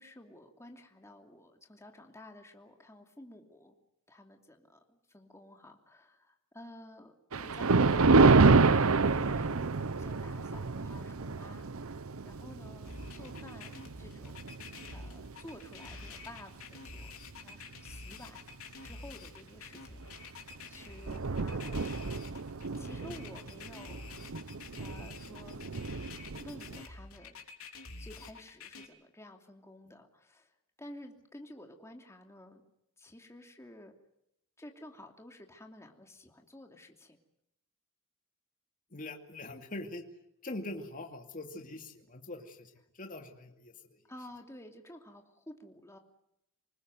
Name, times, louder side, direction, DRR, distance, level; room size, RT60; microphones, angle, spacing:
voice 1, 0.0-3.7 4.1-9.7 9.9-14.5 14.9-17.1 17.4-18.4 18.8-20.4 20.7-22.4 22.8-24.0 24.8-25.6 26.4-27.3 28.0-30.5 30.8-32.6 33.0-33.9 34.6-37.2 44.1-46.0, left 1 dB, 15° left, 3 dB, 2.8 m, -52 dB
Thunder, 7.3-15.9 16.4-16.6 17.3-17.4 17.8-17.9 20.0-20.2 20.6-20.7 20.8-26.8, right 4 dB, 70° right, 0.8 m, -28 dB
sound 1, 12.9-28.9, left 4 dB, 70° left, 3.6 m, -48 dB
voice 2, 38.9-40.0 40.4-44.0, left 2 dB, 40° left, 3 dB, 2.5 m, -43 dB
26.5 x 20.0 x 7.9 m, 0.80 s
head